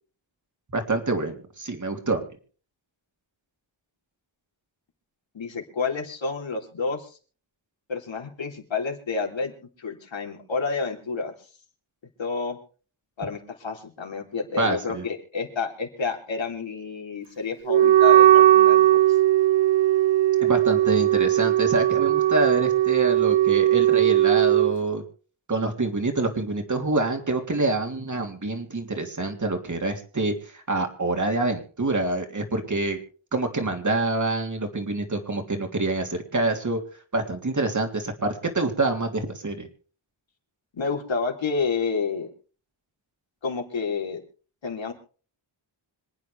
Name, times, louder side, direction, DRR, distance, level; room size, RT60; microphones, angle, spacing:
voice 1, 0.7-2.2 14.6-15.0 20.4-25.0 25.5-33.0 33.3-36.8 37.1-39.7, right 2 dB, 40° right, 4 dB, 3.2 m, -26 dB
voice 2, 5.3-7.2 7.9-9.5 9.8-11.3 12.2-12.6 13.2-19.0 40.7-42.3 43.4-44.2 44.6-44.9, left 5 dB, 70° left, 1 dB, 3.7 m, -29 dB
Wind instrument woodwind instrument, 17.7-24.7, right 13 dB, 65° right, 0.7 m, -18 dB
26.5 x 9.3 x 3.4 m, 0.39 s
wide cardioid pair, 90°, 47 cm